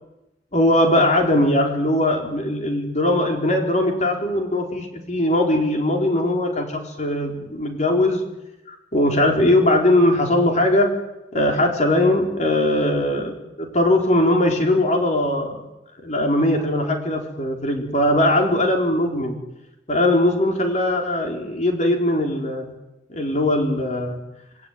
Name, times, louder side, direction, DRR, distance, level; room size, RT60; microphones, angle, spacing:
voice 1, 0.5-8.2 8.7-10.9 11.3-15.6 16.0-19.4 19.9-22.7 23.1-24.2, left 1 dB, 40° left, 2 dB, 4.6 m, -20 dB
28.0 x 20.5 x 9.6 m, 0.95 s
head